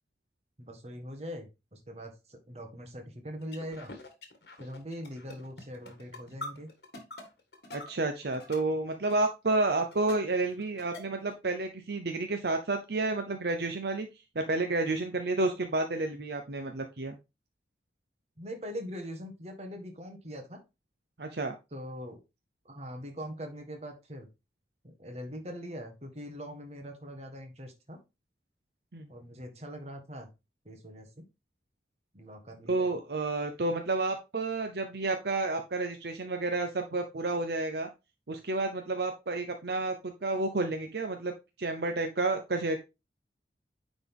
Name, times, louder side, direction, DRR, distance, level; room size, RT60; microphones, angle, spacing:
voice 1, 0.6-3.9 4.6-6.7 18.4-20.6 21.7-22.2 22.6-24.3 24.8-28.0 29.1-30.3 30.6-31.2 32.1-32.9, equal, 35° right, 4 dB, 1.6 m, -42 dB
sound 1, 3.4-8.6 8.9-9.3 9.7-10.1 10.4-11.3, left 2 dB, 60° left, 1.8 m, -45 dB
voice 2, 7.7-14.1 14.3-17.2 21.2-21.5 28.9-29.1 32.7-37.9 38.3-40.0 40.2-41.3 41.6-42.8, right 2 dB, 65° right, 5 dB, 0.7 m, -30 dB
9.7 x 4.1 x 3.6 m, 0.25 s
head